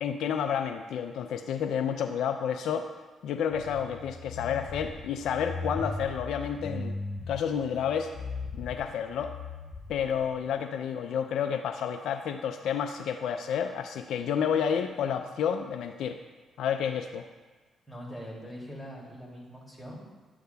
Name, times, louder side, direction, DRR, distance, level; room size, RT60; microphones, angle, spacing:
voice 1, 0.0-2.9 3.2-7.0 7.3-8.1 8.5-9.3 9.9-16.2 16.6-17.3, left 8 dB, 80° left, 6 dB, 0.4 m, -30 dB
sound 1, 3.5-10.4, left 3 dB, 45° left, 1.4 m, -39 dB
voice 2, 17.9-20.2, equal, 5° left, -4 dB, 2.5 m, -42 dB
11.5 x 8.1 x 2.3 m, 1.3 s
cardioid pair, 80°, 0 cm